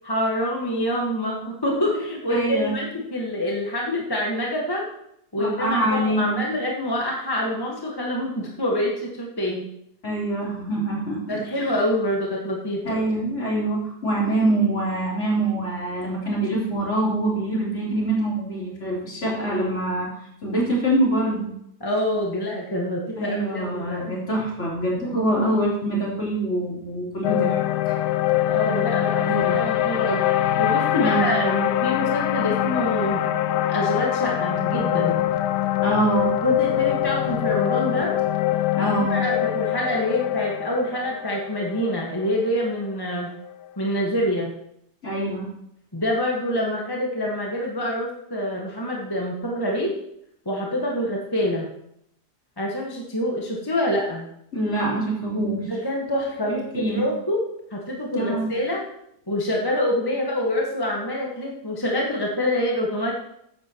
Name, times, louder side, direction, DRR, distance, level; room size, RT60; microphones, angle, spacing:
voice 1, 0.0-4.9 5.3-9.7 11.3-13.0 21.8-24.0 28.5-30.2 30.6-33.2 33.7-35.1 36.4-38.1 39.0-43.3 43.8-44.5 45.9-49.9 50.4-51.7 52.6-54.3 55.6-57.4 57.7-58.8 59.3-63.1, left 1 dB, 15° left, -2 dB, 1.5 m, -26 dB
voice 2, 2.3-2.8 5.4-6.4 10.0-11.8 12.8-20.1 20.4-21.5 23.2-27.6 27.9-28.0 29.3-29.6 30.9-31.3 35.8-36.4 38.8-39.2 45.0-45.5 54.5-55.7 56.7-57.0 58.1-58.5, right 1 dB, 45° left, -6 dB, 4.3 m, -24 dB
sound 1, 27.2-43.5, left 13 dB, 80° left, 1.2 m, -24 dB
14.5 x 10.5 x 3.1 m, 0.76 s
omnidirectional pair, 1.7 m